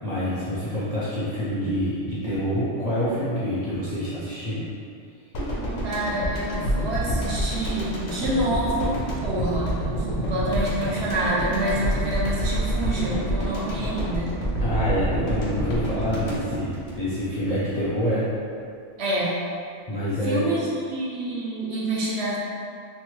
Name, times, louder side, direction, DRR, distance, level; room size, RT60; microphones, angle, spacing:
voice 1, 0.0-4.6 14.6-18.3 19.9-20.5, equal, 45° left, -11 dB, 0.5 m, -26 dB
sound 1, 5.3-17.5 17.8-18.0, right 1 dB, 80° left, 1.0 m, -28 dB
voice 2, 5.8-14.3 19.0-19.4 20.2-22.4, right 1 dB, 65° right, -5 dB, 0.8 m, -27 dB
3.2 x 2.0 x 3.0 m, 2.4 s
omnidirectional pair, 1.3 m